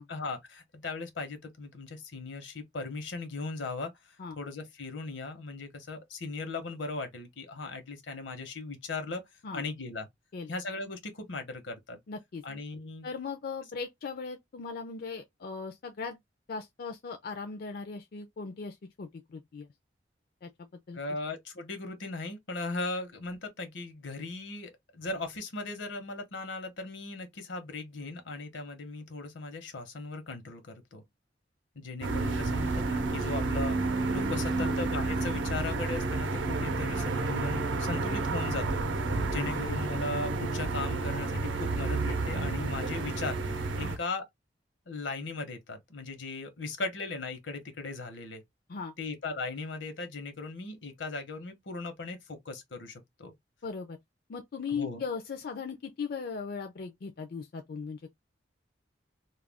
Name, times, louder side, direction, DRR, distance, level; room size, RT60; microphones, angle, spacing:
voice 1, 0.1-9.2 9.5-10.1 10.5-12.0 12.4-13.1 20.9-31.0 31.7-33.8 34.1-44.3 44.9-48.4 49.0-53.3 54.7-55.0, left 3 dB, 80° left, 0.9 m, -38 dB
voice 2, 12.1-12.4 13.0-16.2 16.5-19.7 20.4-21.0 34.5-34.8 39.4-39.6 43.8-44.0 48.7-48.9 53.6-54.0 54.3-58.1, left 5 dB, 55° left, 0.4 m, -38 dB
sound 1, 32.0-44.0, right 3 dB, 80° right, 0.6 m, -30 dB
2.3 x 2.2 x 3.4 m
head